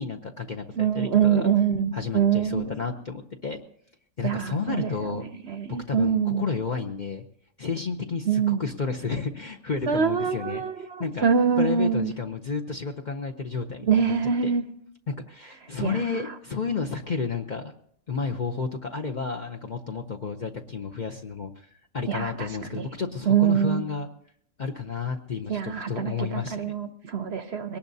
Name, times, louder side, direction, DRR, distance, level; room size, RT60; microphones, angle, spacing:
voice 1, 0.0-1.5 1.9-3.6 4.2-5.2 5.7-7.2 7.6-11.3 11.6-14.1 14.4-14.5 15.1-17.7 18.1-21.7 21.9-24.1 24.6-26.8, left 5 dB, 45° left, 2 dB, 0.7 m, -31 dB
voice 2, 0.8-2.7 4.2-4.9 5.5-6.5 8.3-8.6 9.9-12.1 13.8-14.6 15.8-16.0 22.1-22.5 22.7-22.9 23.3-23.8 25.5-27.8, right 7 dB, 55° right, 9 dB, 0.8 m, -24 dB
22.0 x 18.5 x 2.7 m, 0.70 s
omnidirectional pair, 1.5 m